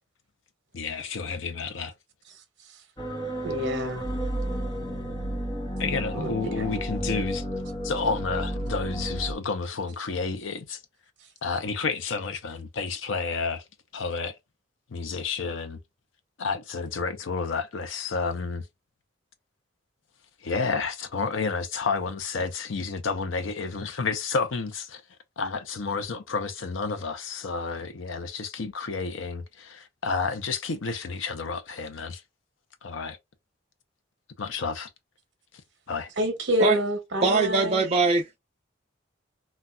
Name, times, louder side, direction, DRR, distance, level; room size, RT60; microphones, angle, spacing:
voice 1, 0.7-1.9 5.8-7.4 7.8-10.8 11.4-13.6 13.9-14.4 14.9-15.8 16.4-18.7 20.4-25.0 25.4-32.2 32.8-33.2 34.4-34.9 35.9-36.1, left 4 dB, 80° left, 0.6 m, -30 dB
sound 1, 3.0-9.4, equal, 20° left, 0.9 m, -32 dB
voice 2, 3.4-4.0 6.1-6.3 36.2-37.8, equal, 60° right, 0.9 m, -27 dB
voice 3, 37.2-38.4, right 3 dB, 30° right, 0.5 m, -22 dB
4.0 x 2.3 x 2.2 m
head